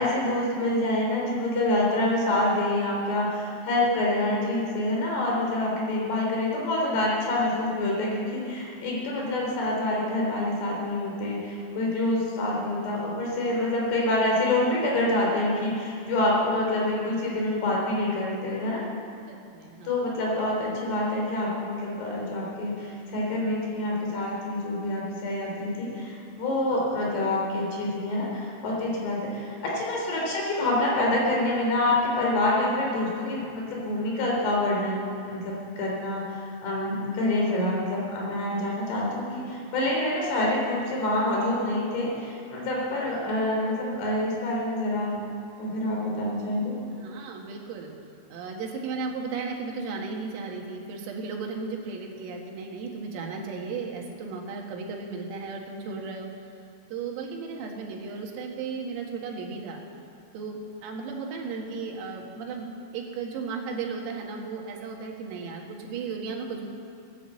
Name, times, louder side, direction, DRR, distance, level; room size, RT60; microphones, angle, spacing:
voice 1, 0.0-18.8 19.8-36.2 36.6-45.2 45.6-46.7, left 1 dB, 55° left, -2 dB, 5.0 m, -27 dB
voice 2, 19.3-19.9 46.9-47.9 48.3-56.3 56.9-59.8 60.3-62.7 62.9-66.7, right 4 dB, 90° right, 0 dB, 4.4 m, -35 dB
18.5 x 10.5 x 7.6 m, 2.5 s
omnidirectional pair, 5.8 m